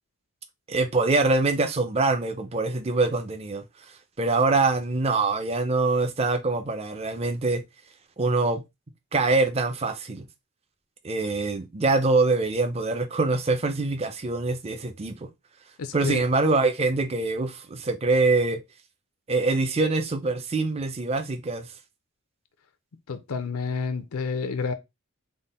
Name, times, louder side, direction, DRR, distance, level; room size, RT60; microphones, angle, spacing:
voice 1, 0.7-3.6 4.2-7.6 8.2-8.6 9.1-10.3 11.0-15.3 15.9-18.6 19.3-21.7, right 3 dB, 25° right, 0.4 m, -24 dB
voice 2, 15.8-16.2 23.1-24.7, left 5 dB, 80° left, 0.5 m, -29 dB
3.7 x 2.1 x 3.9 m
head